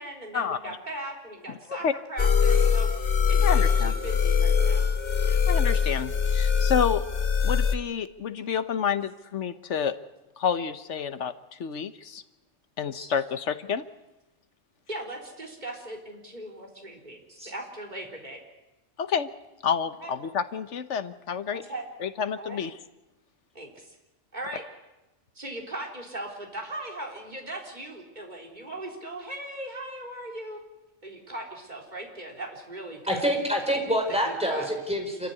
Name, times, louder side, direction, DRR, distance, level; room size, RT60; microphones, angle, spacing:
voice 1, 0.0-2.9 3.3-4.8 14.9-18.4 20.0-20.1 21.5-21.9 22.4-22.6 23.5-23.9 24.3-24.6 25.3-30.6 31.0-33.3 34.2-34.7, right 1 dB, 35° right, 0 dB, 4.1 m, -39 dB
sound 1, 2.2-7.7, left 6 dB, 50° left, 1.3 m, -22 dB
voice 2, 3.4-3.9 5.3-7.0 7.4-10.0 10.4-11.3 11.6-12.2 12.8-13.8 19.0-19.3 19.6-21.6 22.0-22.7, left 7 dB, 70° left, 11 dB, 1.3 m, -29 dB
voice 3, 33.1-35.3, equal, 5° right, 2 dB, 4.9 m, -27 dB
27.5 x 14.5 x 9.8 m, 1.0 s
omnidirectional pair, 1.3 m